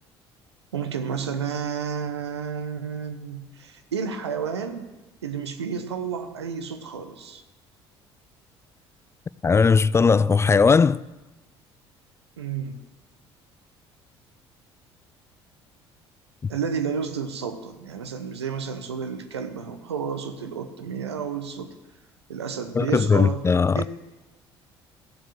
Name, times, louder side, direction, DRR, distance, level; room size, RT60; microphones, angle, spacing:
voice 1, 0.7-4.9 5.2-7.4 12.4-12.8 16.5-21.7 22.3-23.4 23.8-23.9, right 6 dB, 85° right, 1.0 m, -31 dB
voice 2, 9.4-11.0 22.7-23.9, left 5 dB, 20° left, 0.3 m, -18 dB
14.5 x 7.4 x 7.2 m
figure-of-eight pair, 55°, 14 cm